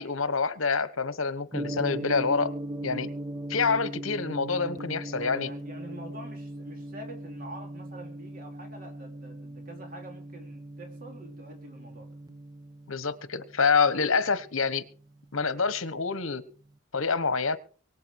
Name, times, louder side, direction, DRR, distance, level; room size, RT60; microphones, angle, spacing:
voice 1, 0.0-2.5 2.8-3.1 3.5-5.5 12.9-14.8 15.3-16.4 16.9-17.6, left 5 dB, 70° left, 14 dB, 1.2 m, -27 dB
Gong, 1.5-15.7, right 1 dB, 20° right, 0.9 m, -39 dB
voice 2, 5.1-12.2, right 1 dB, 40° right, 2 dB, 3.4 m, -46 dB
23.5 x 8.2 x 4.7 m, 0.42 s
head